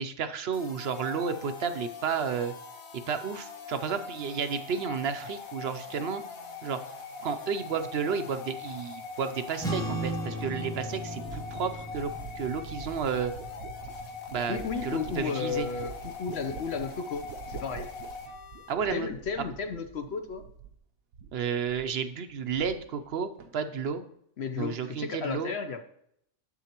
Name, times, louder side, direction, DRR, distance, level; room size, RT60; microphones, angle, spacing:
voice 1, 0.0-2.5 3.1-6.2 6.6-6.8 7.2-13.3 14.3-15.7 18.7-19.1 21.3-24.0 24.6-25.5, right 6 dB, 60° right, 9 dB, 0.7 m, -32 dB
sound 1, 0.5-18.7, left 5 dB, 80° left, 1.6 m, -42 dB
sound 2, 9.6-16.2, right 1 dB, 5° left, 0.7 m, -38 dB
sound 3, 11.2-20.9 21.1-22.0 22.3-23.1 23.4-23.9, right 6 dB, 85° right, 1.1 m, -46 dB
voice 2, 14.5-17.9 18.9-20.5 24.4-25.8, left 5 dB, 60° left, 8 dB, 0.8 m, -33 dB
11.0 x 7.7 x 2.9 m, 0.71 s
omnidirectional pair, 1.4 m